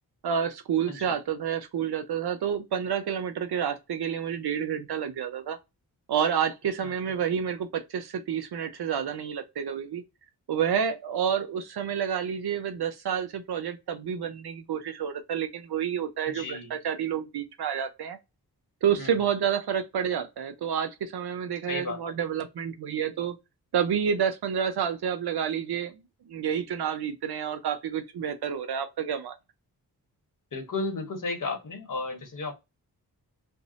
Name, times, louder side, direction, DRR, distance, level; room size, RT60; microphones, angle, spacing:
voice 1, 0.2-5.6 6.1-10.0 10.5-18.2 18.8-23.4 23.7-25.9 26.3-29.4, right 8 dB, 80° right, 0.7 m, -29 dB
voice 2, 16.3-16.7 19.0-19.2 21.7-22.1 30.5-32.5, left 3 dB, 55° left, 1.1 m, -34 dB
2.6 x 2.0 x 3.9 m
cardioid pair, 75°, 39 cm